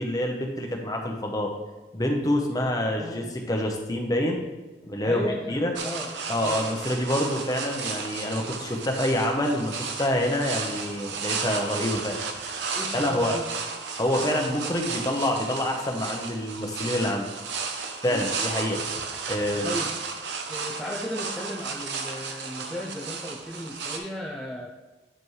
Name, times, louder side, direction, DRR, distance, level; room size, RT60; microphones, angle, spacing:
voice 1, 0.0-1.5 1.9-4.4 4.8-5.7 6.3-12.2 12.9-13.4 14.0-17.3 18.0-18.8 19.3-19.8, left 1 dB, 20° left, 2 dB, 0.9 m, -27 dB
voice 2, 2.9-3.3 5.0-6.1 6.4-6.6 12.7-13.4 18.0-18.3 19.6-19.9 20.5-24.7, equal, 5° left, -4 dB, 0.5 m, -35 dB
sound 1, 5.8-24.0, right 5 dB, 85° right, 0.8 m, -34 dB
8.7 x 5.1 x 3.2 m, 1.2 s
head